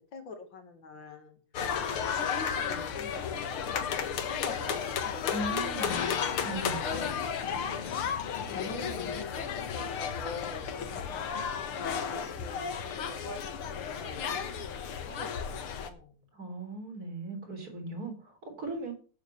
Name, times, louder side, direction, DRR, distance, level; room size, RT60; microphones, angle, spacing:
voice 1, 0.1-1.4 2.1-7.8 8.4-11.3 11.5-11.7 12.1-12.7 12.9-16.1, left 3 dB, 60° left, 6 dB, 2.7 m, -45 dB
sound 1, 1.5-15.9, left 7 dB, 85° left, 2.3 m, -33 dB
voice 2, 5.3-5.9 6.4-6.8 16.3-18.9, right 2 dB, 45° right, 4 dB, 4.2 m, -38 dB
11.5 x 7.8 x 7.0 m, 0.37 s
omnidirectional pair, 2.3 m